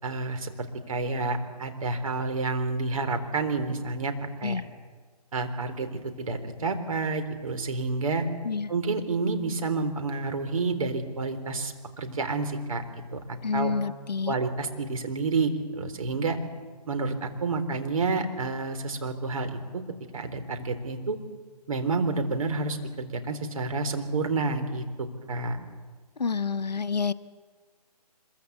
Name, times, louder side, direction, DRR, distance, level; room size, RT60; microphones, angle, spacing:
voice 1, 0.0-4.1 4.4-4.6 5.3-8.3 8.7-13.7 14.3-16.4 16.9-19.8 20.1-21.2 21.7-25.6, right 3 dB, 55° right, 7 dB, 3.9 m, -29 dB
voice 2, 13.4-14.4 26.2-27.1, left 5 dB, 80° left, 12 dB, 0.8 m, -28 dB
25.5 x 23.0 x 8.2 m, 1.5 s
figure-of-eight pair, 155°, 21 cm